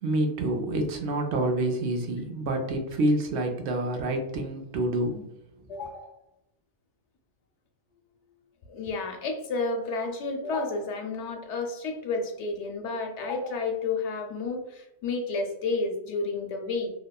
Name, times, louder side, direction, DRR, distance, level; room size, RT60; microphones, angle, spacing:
voice 1, 0.0-5.2, right 1 dB, 75° right, 3 dB, 0.8 m, -27 dB
voice 2, 5.7-6.2 8.7-16.9, left 3 dB, 80° left, 4 dB, 0.9 m, -31 dB
2.9 x 2.1 x 2.2 m, 0.85 s
omnidirectional pair, 1.2 m